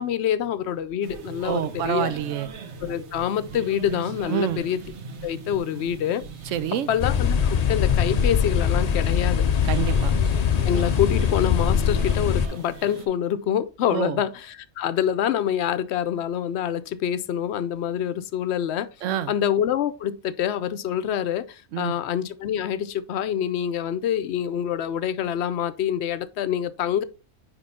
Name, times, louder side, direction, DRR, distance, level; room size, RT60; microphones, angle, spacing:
voice 1, 0.0-2.1 2.8-4.8 5.2-6.2 6.9-9.4 10.7-18.9 19.3-27.0, left 9 dB, 70° left, 0.8 m, -26 dB
sound 1, 1.0-13.1, right 4 dB, 65° right, 1.2 m, -38 dB
voice 2, 1.4-2.5 4.3-4.6 6.5-6.9 9.6-10.1 13.9-14.2 19.0-19.4 21.7-21.9, right 10 dB, 80° right, 1.0 m, -27 dB
sound 2, 7.0-12.5, left 7 dB, 50° left, 0.5 m, -22 dB
5.3 x 5.1 x 4.2 m
omnidirectional pair, 1.3 m